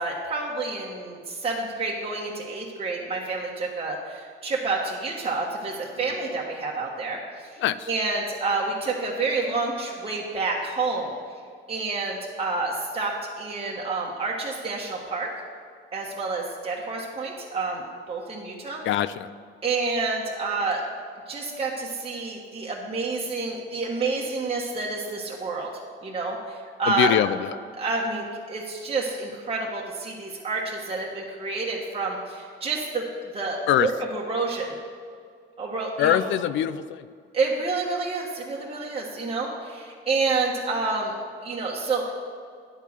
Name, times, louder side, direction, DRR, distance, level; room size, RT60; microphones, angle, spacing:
voice 1, 0.0-7.5 7.9-11.1 11.7-15.3 15.9-18.8 19.6-20.8 21.3-25.7 26.0-27.1 27.8-33.0 33.3-34.7 35.6-36.2 37.3-41.1 41.4-42.1, right 3 dB, 30° right, -3 dB, 1.3 m, -29 dB
voice 2, 7.6-7.9 18.8-19.3 26.9-27.5 33.7-33.9 36.0-37.1, left 11 dB, 75° left, 15 dB, 0.4 m, -23 dB
10.0 x 4.6 x 6.9 m, 2.1 s
cardioid pair, 90°, 20 cm